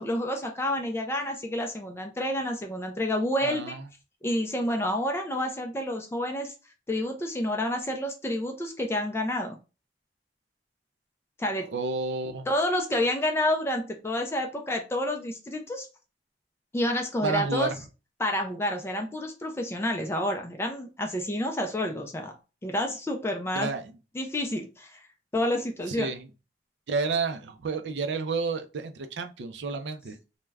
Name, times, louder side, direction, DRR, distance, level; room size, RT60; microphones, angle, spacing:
voice 1, 0.0-3.8 4.2-6.5 6.9-9.6 11.4-11.7 12.5-15.9 16.7-17.7 18.2-22.3 22.6-23.7 24.2-25.0 25.3-26.1, left 1 dB, 15° left, 0.3 m, -29 dB
voice 2, 3.4-3.8 11.7-12.5 17.2-17.8 23.5-23.9 25.9-26.3 26.9-30.2, right 4 dB, 75° right, 0.4 m, -30 dB
2.3 x 2.1 x 3.3 m
head